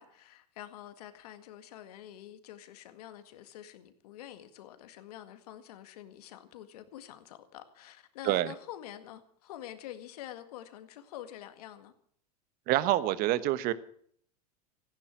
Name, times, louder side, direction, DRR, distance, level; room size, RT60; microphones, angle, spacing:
voice 1, 0.0-11.9, left 12 dB, 70° left, 1.9 m, -47 dB
voice 2, 12.7-13.7, right 15 dB, 45° right, 1.2 m, -27 dB
15.0 x 10.0 x 7.9 m
hypercardioid pair, 110°, 20 cm